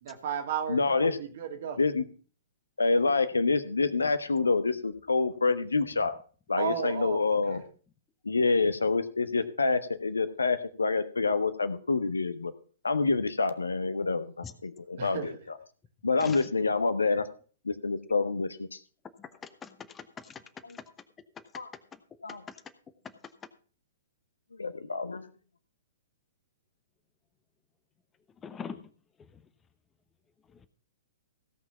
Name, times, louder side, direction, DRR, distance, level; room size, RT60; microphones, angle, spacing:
voice 1, 0.0-1.8 6.6-7.6 15.0-15.4, right 8 dB, 50° right, 5 dB, 2.2 m, -34 dB
voice 2, 0.7-1.2 1.8-2.0 2.8-6.2 6.5-7.6 8.2-12.5 12.8-15.3 16.0-17.2 17.6-18.7 20.7-20.8 21.5-21.7 22.2-22.4 24.6-25.3, left 4 dB, 75° left, 11 dB, 1.2 m, -27 dB
voice 3, 19.6-20.4 20.7-20.8 22.5-22.6 28.4-28.8, left 6 dB, 15° left, 11 dB, 0.9 m, -42 dB
16.5 x 6.0 x 5.6 m, 0.41 s
figure-of-eight pair, 115°, 0 cm